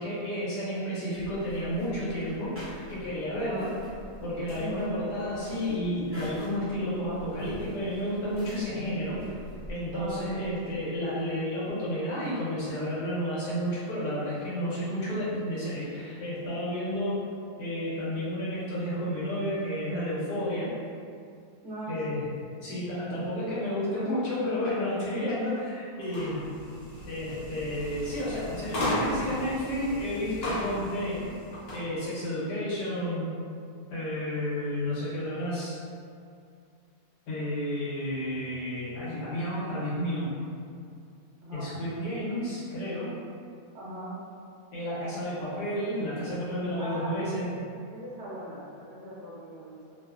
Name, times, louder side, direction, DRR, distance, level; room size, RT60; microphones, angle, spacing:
voice 1, 0.0-3.7 4.2-9.2 9.7-17.2 17.6-20.7 21.9-22.3 22.6-26.4 27.1-31.2 31.7-33.3 33.9-35.8 37.3-40.3 41.5-43.1 44.7-47.5, equal, 80° left, -9 dB, 1.3 m, -31 dB
sound 1, 1.1-10.8, equal, 10° right, 0.7 m, -47 dB
voice 2, 4.6-4.9 9.9-10.3 21.6-22.2 41.4-41.7 43.7-44.2 46.8-47.4 47.9-49.9, right 1 dB, 55° right, -8 dB, 0.9 m, -40 dB
sound 2, 26.0-31.9, left 1 dB, 55° left, 0.7 m, -35 dB
3.0 x 2.1 x 2.3 m, 2.3 s
omnidirectional pair, 1.8 m